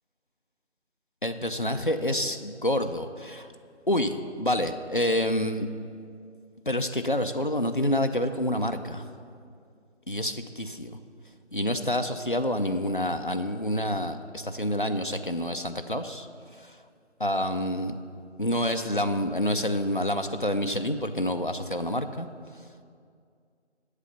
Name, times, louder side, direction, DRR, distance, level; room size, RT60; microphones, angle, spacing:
voice 1, 1.2-3.5 3.9-5.7 6.7-9.1 10.1-11.0 11.5-16.3 16.6-16.8 17.2-17.9 18.4-22.3, left 1 dB, 45° left, 7 dB, 0.4 m, -28 dB
8.1 x 7.6 x 6.8 m, 2.3 s
figure-of-eight pair, 170°, 36 cm